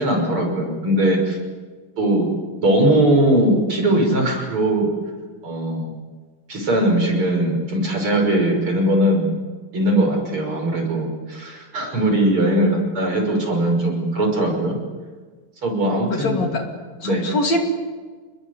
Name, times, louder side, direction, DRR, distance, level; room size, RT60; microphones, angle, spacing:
voice 1, 0.0-1.4 2.0-2.3 2.6-4.9 5.4-5.9 6.5-9.3 9.7-14.8 15.6-16.4 17.0-17.2, right 1 dB, 40° right, 2 dB, 6.7 m, -20 dB
voice 2, 16.1-16.6 17.0-17.6, left 2 dB, 55° left, 3 dB, 3.8 m, -23 dB
29.5 x 21.0 x 8.3 m, 1.4 s
omnidirectional pair, 3.8 m